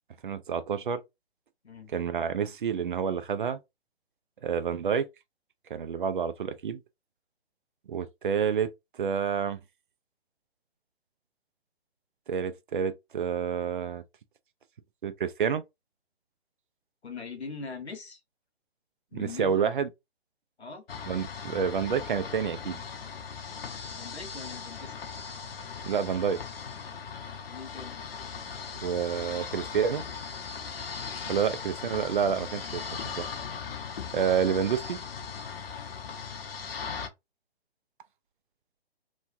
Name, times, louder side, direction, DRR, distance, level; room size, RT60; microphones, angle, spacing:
voice 1, 0.2-1.0 1.9-3.6 4.4-5.1 5.7-6.8 7.9-8.7 9.0-9.6 12.3-14.0 15.0-15.6 19.1-19.9 21.1-22.8 25.8-26.4 28.8-30.0 31.3-33.2 34.1-35.0, right 7 dB, 50° right, 0.4 m, -28 dB
voice 2, 17.0-18.2 19.1-19.7 20.6-20.8 23.9-25.0 27.5-28.0 31.2-31.3, left 4 dB, 80° left, 1.1 m, -41 dB
sound 1, 20.9-37.1, left 6 dB, 60° left, 0.7 m, -39 dB
3.1 x 2.2 x 2.6 m
figure-of-eight pair, 140°, 32 cm